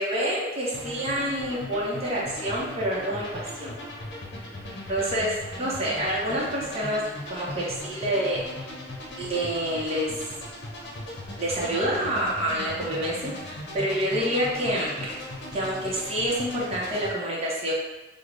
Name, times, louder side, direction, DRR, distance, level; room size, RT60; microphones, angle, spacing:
voice 1, 0.0-3.7 4.9-7.0 7.3-8.8 9.2-10.3 11.4-15.2 15.5-17.7, equal, 35° right, -6 dB, 0.7 m, -28 dB
sound 1, 0.7-17.1, left 1 dB, 60° left, 0.8 m, -38 dB
3.3 x 2.1 x 3.8 m, 1.2 s
head